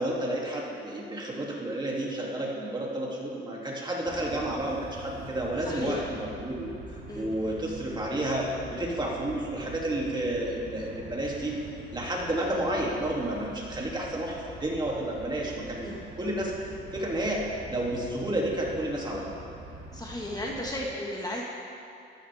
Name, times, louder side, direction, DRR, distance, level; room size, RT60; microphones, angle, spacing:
voice 1, 0.0-6.7 7.1-11.6 11.9-16.5 16.9-19.3, right 1 dB, 20° right, -3 dB, 2.7 m, -31 dB
sound 1, 4.0-20.8, right 2 dB, 50° right, 2.9 m, -45 dB
voice 2, 5.6-6.1 7.1-7.6 15.8-16.0 19.9-21.4, left 1 dB, 20° left, -2 dB, 1.6 m, -35 dB
14.0 x 13.0 x 3.6 m, 2.6 s
cardioid pair, 90°, 20 cm